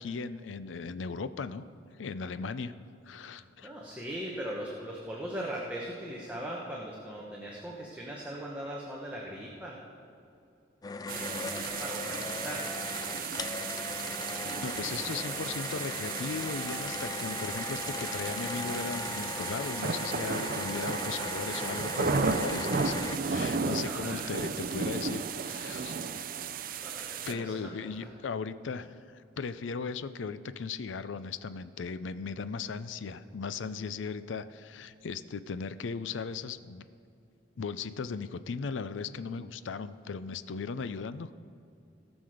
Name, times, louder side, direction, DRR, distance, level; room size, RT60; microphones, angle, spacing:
voice 1, 0.0-1.7 2.0-2.8 3.1-3.7 14.6-26.0 27.2-36.8 37.6-41.3, left 5 dB, 90° left, 14 dB, 0.5 m, -37 dB
voice 2, 3.6-9.8 11.1-12.7 23.8-24.3 26.8-28.1, right 1 dB, 10° right, -4 dB, 1.1 m, -39 dB
sound 1, 10.8-23.2, left 4 dB, 20° left, 0.3 m, -38 dB
sound 2, 11.1-27.3, right 5 dB, 50° right, 0.5 m, -34 dB
18.0 x 6.2 x 4.9 m, 2.6 s
head